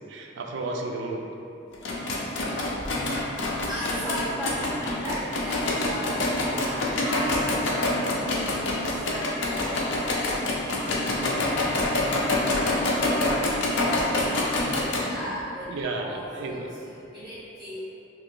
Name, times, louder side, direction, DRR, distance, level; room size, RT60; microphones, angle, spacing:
voice 1, 0.1-1.3 15.7-16.7, right 2 dB, 70° right, 1 dB, 0.3 m, -32 dB
sound 1, 1.7-15.0, left 2 dB, 75° left, 0.5 m, -26 dB
voice 2, 3.7-6.2 6.6-8.8 9.1-10.8 11.1-12.0 12.3-16.8 17.1-17.8, equal, ahead, -9 dB, 0.4 m, -37 dB
2.8 x 2.4 x 3.6 m, 2.7 s
head